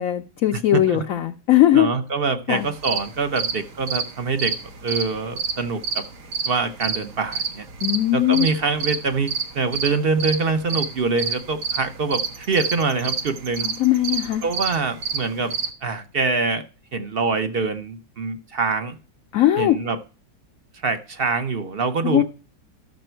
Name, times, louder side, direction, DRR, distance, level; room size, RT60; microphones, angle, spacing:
voice 1, 0.0-1.9 2.5-2.7 7.8-8.5 13.6-14.4 19.3-19.8 22.0-22.2, left 13 dB, 65° left, 6 dB, 0.9 m, -19 dB
voice 2, 0.7-1.0 1.7-4.5 4.8-6.0 6.5-7.7 8.1-13.7 14.4-15.5 15.8-16.6 16.9-19.0 19.6-20.0 20.8-22.2, right 4 dB, 50° right, 9 dB, 0.7 m, -24 dB
sound 1, 2.6-15.7, right 5 dB, 65° right, 1.7 m, -28 dB
12.0 x 6.8 x 4.5 m, 0.35 s
omnidirectional pair, 2.0 m